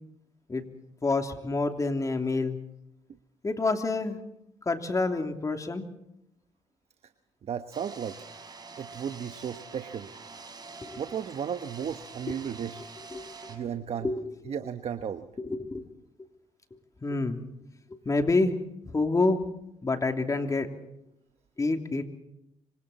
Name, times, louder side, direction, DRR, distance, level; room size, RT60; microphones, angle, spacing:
voice 1, 1.0-2.6 3.4-4.2 4.6-5.9 10.8-11.0 13.1-13.2 14.0-14.3 15.4-15.8 17.0-17.4 17.9-18.5 18.8-19.4 19.8-20.7 21.6-22.0, left 3 dB, 25° left, 5 dB, 3.0 m, -27 dB
voice 2, 7.4-8.2 8.8-10.1 11.0-12.9 13.5-14.1 14.4-15.3, right 8 dB, 60° right, 9 dB, 1.2 m, -34 dB
sound 1, 7.7-13.6, right 4 dB, 35° right, 5.5 m, -46 dB
26.5 x 25.5 x 4.3 m, 0.83 s
cardioid pair, 85°, 12 cm